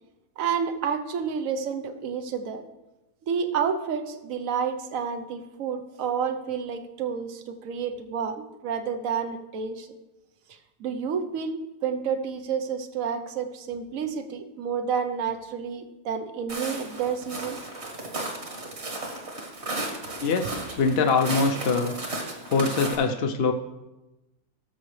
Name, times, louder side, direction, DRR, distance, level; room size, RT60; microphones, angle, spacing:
voice 1, 0.4-2.6 3.2-9.9 10.8-17.6, right 6 dB, 65° right, 9 dB, 1.2 m, -30 dB
Walk footsteps, 16.5-22.9, right 2 dB, 45° right, 1.9 m, -34 dB
voice 2, 20.2-22.0 22.5-23.5, left 4 dB, 60° left, 4 dB, 0.7 m, -23 dB
18.5 x 6.9 x 3.2 m, 1.0 s
omnidirectional pair, 1.6 m